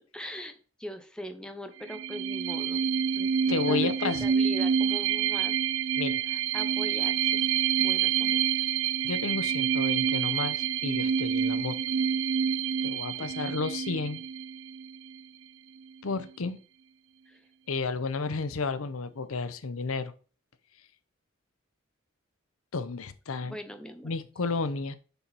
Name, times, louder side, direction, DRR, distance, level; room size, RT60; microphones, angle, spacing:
voice 1, 0.0-2.9 3.1-5.5 5.9-6.0 6.3-7.5 7.8-8.8 13.2-13.5 17.3-17.4 23.4-24.1, equal, 5° left, 0.8 m, -42 dB
sound 1, 1.8-15.2, right 8 dB, 70° right, 0.4 m, -28 dB
voice 2, 3.5-4.3 6.0-6.2 9.0-11.8 12.8-14.2 16.0-16.6 17.7-20.1 22.7-23.6 24.0-25.0, left 4 dB, 80° left, 0.7 m, -32 dB
6.9 x 6.0 x 4.1 m
head